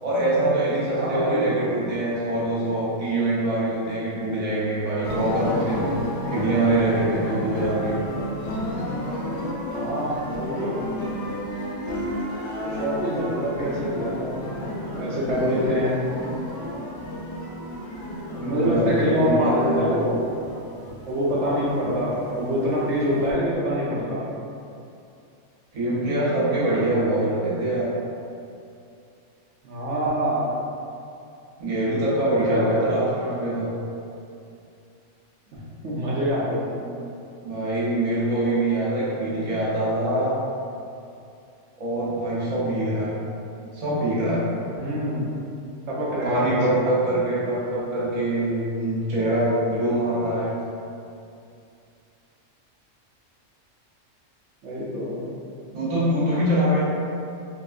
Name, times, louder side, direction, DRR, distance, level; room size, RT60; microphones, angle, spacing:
voice 1, 0.0-5.9 6.2-7.9 18.3-19.9 25.7-27.9 31.6-33.7 36.7-37.1 37.4-40.4 41.8-43.1 43.7-44.4 46.2-50.5 55.7-56.8, right 1 dB, 35° right, -8 dB, 0.6 m, -24 dB
voice 2, 0.9-1.7 9.7-10.8 12.6-14.4 15.0-16.0 18.4-20.2 20.5-20.6 21.1-24.2 29.6-30.5 32.5-33.0 35.5-36.8 44.7-45.3 45.9-46.9 54.6-55.2, equal, 65° right, -7 dB, 0.9 m, -25 dB
sound 1, 5.0-23.3, equal, 70° left, 1.0 m, -32 dB
3.6 x 2.3 x 2.4 m, 2.6 s
omnidirectional pair, 1.3 m